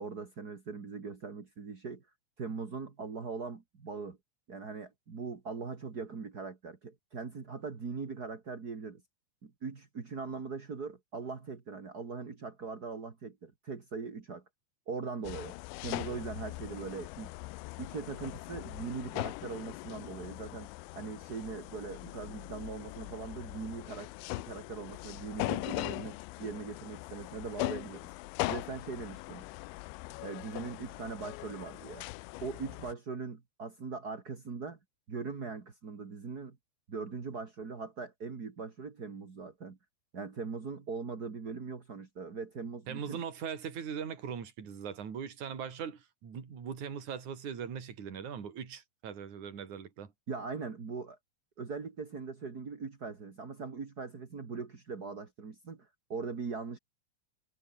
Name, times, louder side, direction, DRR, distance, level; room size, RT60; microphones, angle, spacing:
voice 1, 0.0-2.0 2.4-4.2 4.5-9.0 9.4-14.4 14.9-15.6 15.8-17.4 17.8-24.1 24.4-28.1 28.5-29.5 30.2-32.0 32.4-34.8 35.1-36.6 36.9-39.8 40.1-43.2 50.3-51.2 51.6-56.8, right 4 dB, 60° right, 1.0 m, -41 dB
sound 1, 15.2-32.9, left 23 dB, 90° left, 2.6 m, -40 dB
voice 2, 42.9-50.1, right 7 dB, 40° right, 4.6 m, -40 dB
omnidirectional pair, 5.8 m